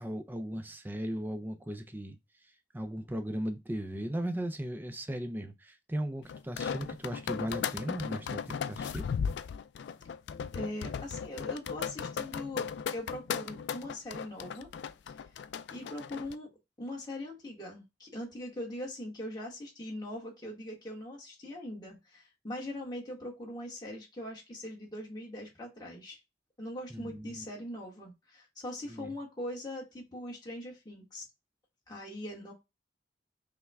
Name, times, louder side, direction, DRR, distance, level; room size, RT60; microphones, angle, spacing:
voice 1, 0.0-2.2 2.7-9.1 26.9-27.4 28.9-29.1, right 1 dB, 10° right, 0.5 m, -37 dB
sound 1, 6.3-16.4, left 7 dB, 70° left, 0.3 m, -36 dB
voice 2, 10.5-14.7 15.7-16.5 16.8-26.2 26.6-31.2 31.9-32.5, left 1 dB, 25° left, 1.4 m, -41 dB
5.5 x 2.2 x 3.4 m
head